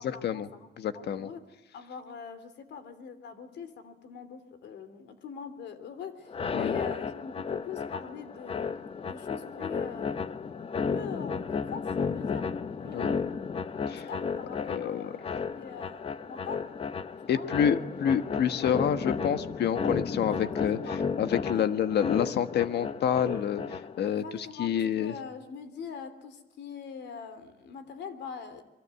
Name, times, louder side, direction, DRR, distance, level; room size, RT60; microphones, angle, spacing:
voice 1, 0.0-0.7 0.9-1.5 1.7-10.2 10.9-12.5 12.8-13.4 13.9-16.6 17.2-17.5 20.3-21.0 21.4-21.7 22.1-22.4 24.0-28.6, left 6 dB, 90° left, 11 dB, 3.1 m, -43 dB
voice 2, 0.8-1.3 6.5-6.7 12.9-13.1 13.9-14.0 14.7-15.1 17.3-20.8 21.2-24.2 24.6-25.1, left 9 dB, 75° left, 10 dB, 1.5 m, -28 dB
sound 1, 6.3-24.1, left 5 dB, 30° left, 0.9 m, -33 dB
29.0 x 23.0 x 8.4 m, 1.0 s
cardioid pair, 150°, 17 cm